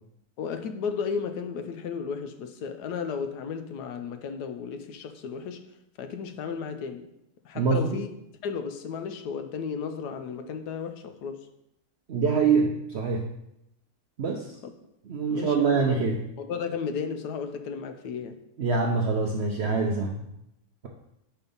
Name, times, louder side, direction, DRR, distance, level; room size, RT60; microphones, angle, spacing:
voice 1, 0.4-5.6 6.0-7.1 7.4-8.1 8.4-11.5 15.3-16.0 16.4-18.4, left 6 dB, 75° left, 8 dB, 1.2 m, -34 dB
voice 2, 7.5-8.0 12.1-13.3 14.2-14.6 15.1-16.2 18.6-20.2, right 4 dB, 65° right, 1 dB, 0.7 m, -25 dB
5.4 x 4.4 x 5.3 m, 0.80 s
omnidirectional pair, 1.8 m